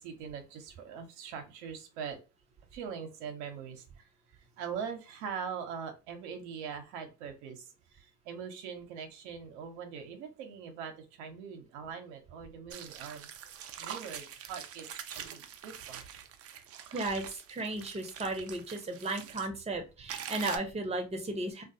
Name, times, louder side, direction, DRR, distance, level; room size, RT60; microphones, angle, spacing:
voice 1, 0.0-2.2 2.7-13.3 13.8-16.0, right 6 dB, 80° right, 5 dB, 0.7 m, -42 dB
sound 1, 12.7-19.5 20.1-20.6, right 9 dB, 45° right, 0.5 m, -44 dB
voice 2, 16.9-21.6, right 2 dB, 20° right, 4 dB, 0.8 m, -35 dB
2.3 x 2.2 x 2.7 m, 0.29 s
supercardioid pair, 80°, 34 cm